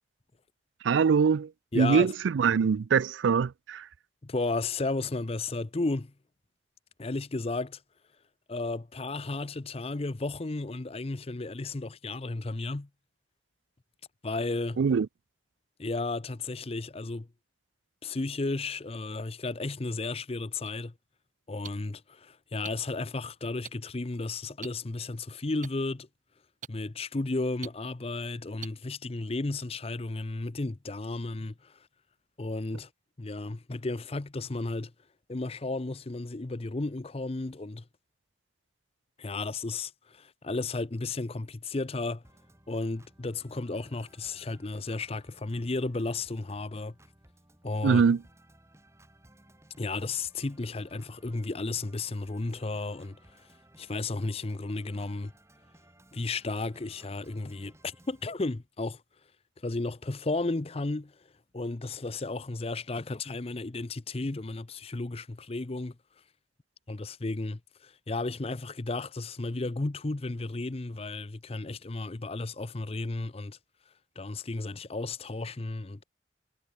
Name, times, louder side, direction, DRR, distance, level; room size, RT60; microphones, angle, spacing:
voice 1, 0.8-3.9 14.8-15.1 47.8-48.2, right 6 dB, 80° right, 0.4 m, -23 dB
voice 2, 1.7-2.1 4.2-6.1 7.0-7.8 8.5-12.9 14.2-14.8 15.8-17.3 18.0-20.9 21.5-26.1 26.7-31.8 32.4-32.9 33.2-34.9 35.3-37.8 39.2-42.2 42.7-47.0 47.6-48.0 49.8-53.5 53.8-55.3 56.1-59.0 59.6-61.2 61.5-66.0 66.9-73.6 74.2-76.0, left 3 dB, 35° left, 0.6 m, -33 dB
sound 1, 20.7-20.8 21.6-21.7 22.6-22.7 23.6-23.7 24.6-24.7 25.6-25.7 26.6-26.7 27.6-27.7 28.6-28.7, right 8 dB, 45° right, 0.8 m, -39 dB
Organ, 42.2-58.2, right 1 dB, 15° right, 4.1 m, -59 dB
head